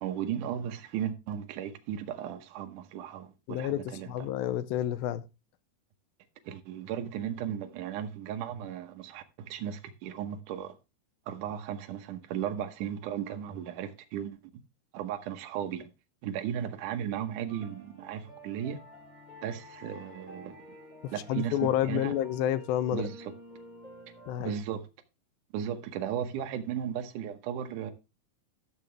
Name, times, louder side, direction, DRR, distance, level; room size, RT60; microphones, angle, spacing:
voice 1, 0.0-4.3 6.4-10.8 11.3-14.4 14.9-15.9 16.2-18.8 19.4-20.6 21.1-22.2 22.9-23.3 24.4-24.9 25.5-27.9, right 9 dB, 65° right, 2.3 m, -36 dB
voice 2, 3.5-5.2 21.0-23.0 24.3-24.5, left 11 dB, 80° left, 2.4 m, -30 dB
sound 1, 17.5-24.6, equal, 10° left, 3.3 m, -50 dB
12.5 x 6.8 x 3.3 m
omnidirectional pair, 4.3 m